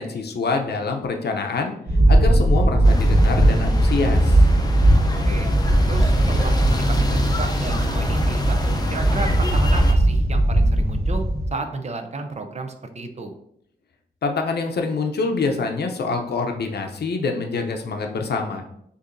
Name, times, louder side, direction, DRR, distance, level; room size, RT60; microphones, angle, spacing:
voice 1, 0.0-1.8 2.1-4.4 14.2-18.6, left 4 dB, 75° left, 4 dB, 0.6 m, -25 dB
sound 1, 1.9-11.5, right 1 dB, 65° right, 1.2 m, -18 dB
sound 2, 2.8-9.9, left 2 dB, 25° left, 0.5 m, -29 dB
voice 2, 5.8-8.6 8.9-11.2 11.5-13.3, right 3 dB, 40° right, 7 dB, 0.5 m, -32 dB
6.6 x 2.6 x 2.6 m, 0.74 s
wide cardioid pair, 145°, 17 cm